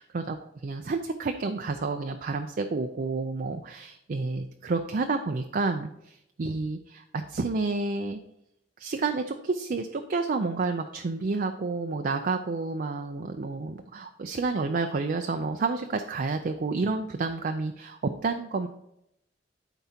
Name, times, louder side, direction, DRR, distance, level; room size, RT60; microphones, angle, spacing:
voice 1, 0.0-0.4 0.6-8.2 8.8-18.7, right 3 dB, 50° right, 6 dB, 0.4 m, -30 dB
12.0 x 4.6 x 2.8 m, 0.79 s
head